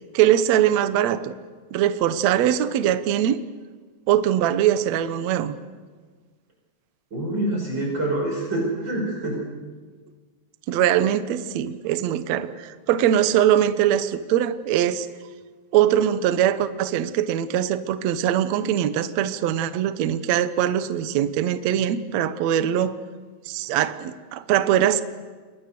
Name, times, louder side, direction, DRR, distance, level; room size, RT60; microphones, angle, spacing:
voice 1, 0.1-1.3 1.7-3.4 4.1-5.6 10.7-15.1 15.7-22.9 23.5-25.0, right 10 dB, 90° right, 11 dB, 1.5 m, -22 dB
voice 2, 7.1-9.4, right 1 dB, 25° right, 0 dB, 5.7 m, -26 dB
29.0 x 23.5 x 6.9 m, 1.5 s
omnidirectional pair, 4.8 m